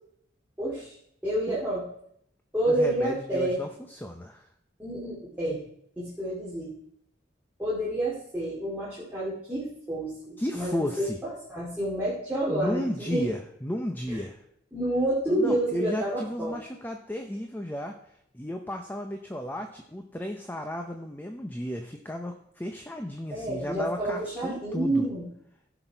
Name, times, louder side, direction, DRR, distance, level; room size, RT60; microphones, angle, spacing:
voice 1, 0.6-0.9 1.2-1.8 2.5-3.6 4.8-5.6 6.0-6.7 7.6-13.3 14.1-14.2 14.7-16.6 23.3-25.3, right 1 dB, 10° right, -8 dB, 2.3 m, -29 dB
voice 2, 2.7-4.4 10.4-11.2 12.5-14.4 15.3-18.0 18.3-25.1, equal, 10° left, 5 dB, 0.6 m, -34 dB
16.0 x 6.0 x 4.5 m, 0.71 s
head